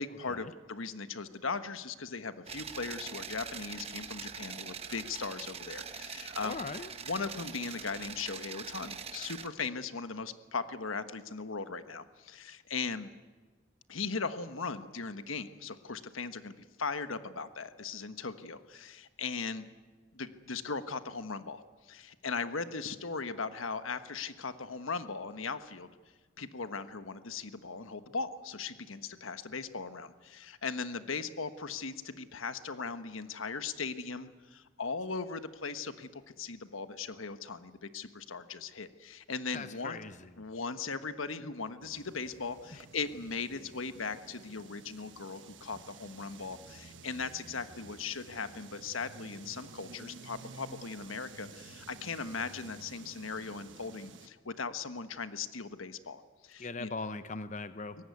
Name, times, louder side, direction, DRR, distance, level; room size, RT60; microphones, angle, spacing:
voice 1, 0.0-6.7 7.1-13.1 13.9-19.7 20.1-25.9 26.4-40.0 40.4-56.9, left 4 dB, 90° left, 11 dB, 1.3 m, -38 dB
sound 1, 2.5-9.5, right 6 dB, 30° right, 1.0 m, -43 dB
voice 2, 6.4-6.9 39.5-40.3 56.6-58.0, left 3 dB, 35° left, 12 dB, 0.7 m, -40 dB
sound 2, 41.8-54.3, right 4 dB, 65° right, 1.3 m, -52 dB
23.5 x 18.5 x 9.4 m, 1.4 s
head